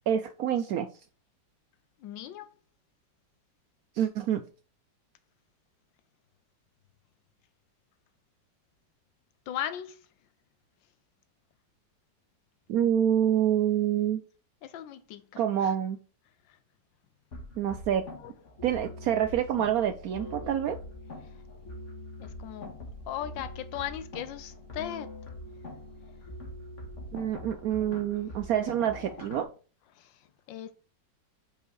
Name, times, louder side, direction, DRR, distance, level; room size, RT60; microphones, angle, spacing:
voice 1, 0.1-0.9 4.0-4.4 12.7-14.2 15.4-16.0 17.6-18.0 18.6-20.8 27.1-29.5, right 10 dB, 75° right, 0.8 m, -27 dB
voice 2, 2.0-2.5 9.5-10.0 14.6-15.7 18.2-18.3 22.2-22.7 23.1-25.1 30.0-30.1 30.5-30.7, left 11 dB, 90° left, 1.4 m, -37 dB
sound 1, 17.3-29.4, left 1 dB, 40° left, 1.8 m, -43 dB
5.4 x 5.0 x 4.6 m
omnidirectional pair, 2.0 m